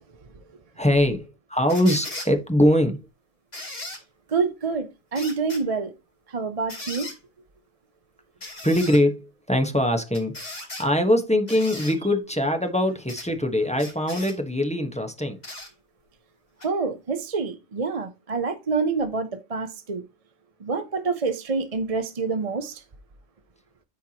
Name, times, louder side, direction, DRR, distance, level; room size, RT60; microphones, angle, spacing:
voice 1, 0.8-3.0 8.6-15.4, left 1 dB, 5° left, 1.0 m, -22 dB
sound 1, 1.7-2.3 3.5-4.0 5.1-5.6 6.7-7.2 8.4-9.0 10.1-10.9 11.5-11.9 13.1-13.3 13.8-14.4 15.4-15.7 16.6-16.7, left 2 dB, 50° left, 4.4 m, -37 dB
voice 2, 4.3-5.9 6.3-7.1 16.6-20.0 20.6-22.8, right 4 dB, 35° right, 0.7 m, -27 dB
13.5 x 4.6 x 2.9 m
omnidirectional pair, 1.4 m